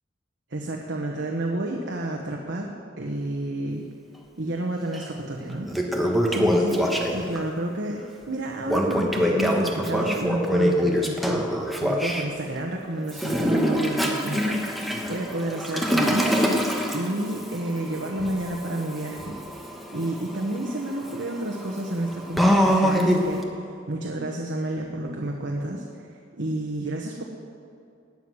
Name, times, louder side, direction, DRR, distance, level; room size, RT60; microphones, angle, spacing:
voice 1, 0.5-3.8 4.4-11.5 11.8-27.2, right 1 dB, 65° right, 0 dB, 1.3 m, -30 dB
Toilet flush, 4.9-5.0 5.5-7.4 8.7-12.2 13.1-23.4, equal, ahead, 1.3 m, -25 dB
17.0 x 9.9 x 6.3 m, 2.5 s
head